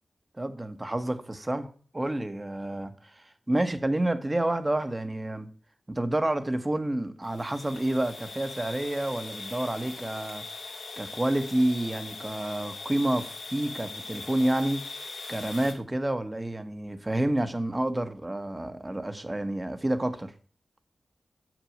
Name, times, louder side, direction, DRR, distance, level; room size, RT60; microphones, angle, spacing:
voice 1, 0.4-5.5 5.9-10.4 11.0-14.8 15.3-20.3, right 1 dB, 25° right, 1.3 m, -29 dB
sound 1, 7.2-15.7, left 3 dB, 85° left, 2.0 m, -41 dB
6.9 x 6.2 x 6.5 m
cardioid pair, 45°, 0 cm